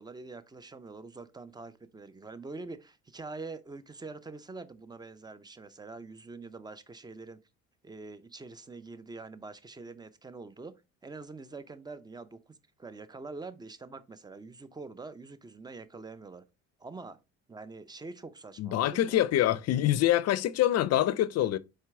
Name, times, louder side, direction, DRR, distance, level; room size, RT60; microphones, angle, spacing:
voice 1, 0.0-7.4 7.8-16.4 16.8-17.2 17.5-19.2, right 3 dB, 15° right, 0.5 m, -45 dB
voice 2, 18.6-21.6, left 13 dB, 50° left, 0.5 m, -25 dB
4.5 x 3.3 x 3.5 m
supercardioid pair, 70°, 32 cm